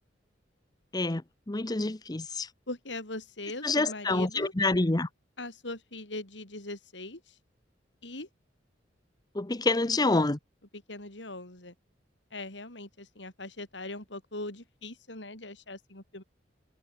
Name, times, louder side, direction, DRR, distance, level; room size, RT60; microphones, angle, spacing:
voice 1, 1.5-2.5 3.6-5.1 9.3-10.4, left 2 dB, 20° left, 0.8 m, -27 dB
voice 2, 2.7-4.5 5.4-7.4 8.0-8.3 10.7-11.7 12.3-16.2, left 2 dB, 75° left, 6.6 m, -40 dB
head